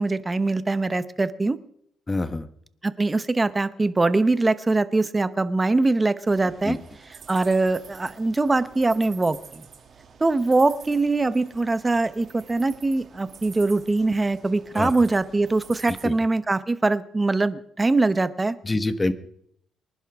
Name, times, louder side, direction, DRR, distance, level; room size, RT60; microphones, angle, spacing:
voice 1, 0.0-1.6 2.8-6.8 7.3-9.7 10.2-18.5, right 3 dB, 20° right, 14 dB, 0.9 m, -22 dB
voice 2, 2.1-2.5 6.6-6.8 14.7-14.9 15.9-16.1 18.6-19.1, left 2 dB, 20° left, 11 dB, 1.2 m, -25 dB
sound 1, 6.2-16.1, right 6 dB, 50° right, 2.5 m, -47 dB
24.0 x 11.0 x 3.6 m, 0.69 s
cardioid pair, 90°, 0 cm